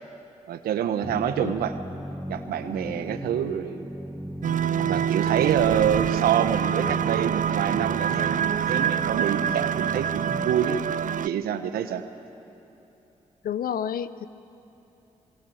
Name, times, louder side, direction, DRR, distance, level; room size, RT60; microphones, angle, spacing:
voice 1, 0.5-1.8 2.3-3.9 4.8-10.8 11.2-12.0, right 9 dB, 85° right, 9 dB, 1.3 m, -27 dB
sound 1, 1.0-10.6, equal, ahead, 1.5 m, -38 dB
sound 2, 4.4-11.3, right 9 dB, 60° right, 0.6 m, -26 dB
voice 2, 13.4-14.3, left 9 dB, 75° left, 14 dB, 0.9 m, -29 dB
28.0 x 20.5 x 8.8 m, 3.0 s
supercardioid pair, 45°, 15 cm